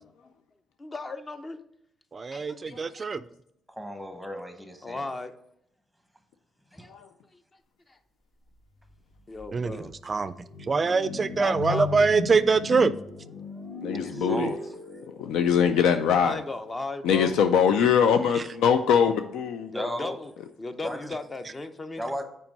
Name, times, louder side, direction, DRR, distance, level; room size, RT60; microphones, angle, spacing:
voice 1, 0.8-1.6 2.3-3.2 4.8-5.3 6.7-7.4 7.9-8.0 9.3-9.9 11.3-12.1 16.2-17.4 19.7-20.3 20.6-22.2, left 3 dB, 25° left, 0.6 m, -36 dB
voice 2, 2.1-3.2 9.5-9.8 10.1-10.3 10.7-12.9, right 4 dB, 35° right, 0.3 m, -23 dB
voice 3, 3.7-5.0 6.8-6.9 13.9-14.6 19.7-20.2 20.8-21.1 22.0-22.2, equal, 5° left, 1.1 m, -35 dB
sound 1, 8.9-9.0 9.4-15.5, left 3 dB, 45° left, 1.1 m, -36 dB
voice 4, 13.8-14.5 15.2-16.4 17.0-19.7, left 7 dB, 90° left, 0.4 m, -22 dB
5.9 x 4.5 x 5.3 m
cardioid pair, 90°, 0 cm